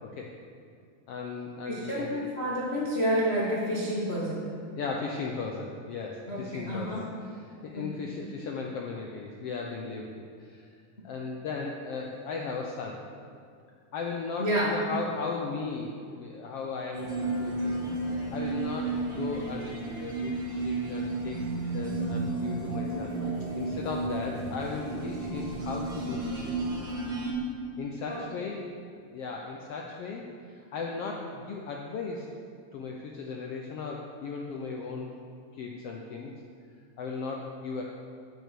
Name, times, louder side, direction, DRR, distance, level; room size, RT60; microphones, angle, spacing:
voice 1, 1.1-2.2 4.8-10.7 11.0-13.0 13.9-17.8 18.3-19.7 20.0-23.1 23.6-26.5 27.8-32.3 32.7-35.1 35.5-36.3 37.0-37.8, left 4 dB, 80° left, 0 dB, 1.3 m, -36 dB
voice 2, 1.6-4.5 6.3-7.1 7.7-8.1 14.4-14.7 28.1-28.2, equal, 55° left, -5 dB, 0.6 m, -29 dB
sound 1, 16.9-27.3, right 2 dB, 45° right, 1.9 m, -32 dB
9.2 x 8.6 x 6.7 m, 2.3 s
omnidirectional pair, 3.7 m